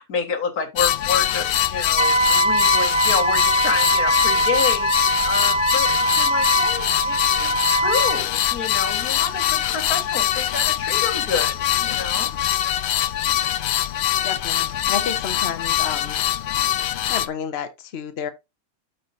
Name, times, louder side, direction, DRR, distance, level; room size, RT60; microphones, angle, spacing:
voice 1, 0.0-7.2 7.4-12.4, left 5 dB, 85° left, 2.1 m, -28 dB
sound 1, 0.8-17.3, left 12 dB, 65° left, 0.6 m, -23 dB
Wind instrument woodwind instrument, 2.0-8.2, right 2 dB, 35° right, 0.5 m, -22 dB
voice 2, 14.2-16.2 17.1-18.3, left 7 dB, 50° left, 1.1 m, -30 dB
12.0 x 5.0 x 2.7 m
omnidirectional pair, 1.5 m